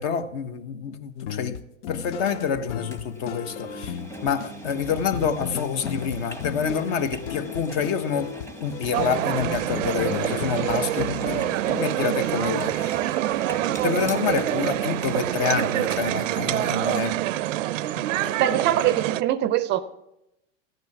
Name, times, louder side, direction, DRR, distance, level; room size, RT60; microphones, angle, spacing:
voice 1, 0.0-1.6 1.9-8.3 8.6-13.1 13.8-17.5 17.9-18.4, left 6 dB, 55° left, 1.2 m, -28 dB
sound 1, 1.2-11.7, left 10 dB, 75° left, 0.6 m, -35 dB
Engine, 2.9-16.3, right 1 dB, 5° left, 0.9 m, -41 dB
sound 2, 8.9-19.2, right 14 dB, 85° right, 0.5 m, -26 dB
voice 2, 18.4-19.8, right 12 dB, 30° right, 0.4 m, -22 dB
15.0 x 9.4 x 6.0 m
hypercardioid pair, 125°, 37 cm